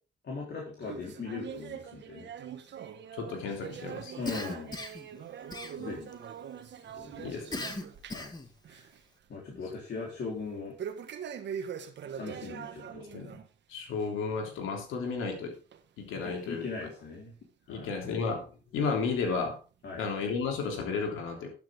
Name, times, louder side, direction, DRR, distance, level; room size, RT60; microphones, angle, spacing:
voice 1, 0.2-2.3 4.2-4.8 5.8-6.1 6.9-7.6 8.1-8.4 8.7-8.9 9.3-10.8 12.1-13.0 16.1-17.3 17.7-17.9 19.8-20.0, left 4 dB, 60° left, -2 dB, 4.0 m, -39 dB
sound 1, 0.8-8.4 8.6-9.0 9.4-9.5 10.8-13.5 13.9-14.1 14.7-14.8 15.7-15.8 16.6-16.7, right 8 dB, 65° right, 1.6 m, -42 dB
voice 2, 3.1-4.1 7.2-7.7 9.5-9.6 13.1-13.4 13.7-15.5 16.0-16.7 17.7-18.5 18.7-19.6 19.9-21.5, left 5 dB, 90° left, 3 dB, 3.3 m, -33 dB
Cough, 4.3-5.1 5.5-6.1 7.5-8.5, left 2 dB, 20° left, 1.9 m, -38 dB
12.0 x 9.4 x 3.7 m, 0.34 s
cardioid pair, 90°, 20 cm